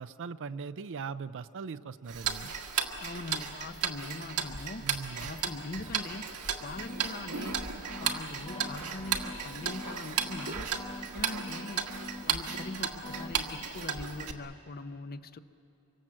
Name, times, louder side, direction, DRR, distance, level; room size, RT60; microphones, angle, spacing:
voice 1, 0.0-2.5 4.8-5.3, right 5 dB, 60° right, 12 dB, 0.5 m, -40 dB
Tick-tock, 2.1-14.3, right 7 dB, 80° right, 1.7 m, -35 dB
voice 2, 3.0-6.3 6.6-10.7 11.1-11.9 12.2-15.4, left 3 dB, 45° left, 11 dB, 0.8 m, -42 dB
sound 1, 6.8-8.2 8.5-10.5 10.7-12.7 13.0-13.6, left 2 dB, 25° left, 1.3 m, -44 dB
25.5 x 25.0 x 7.6 m, 2.8 s
head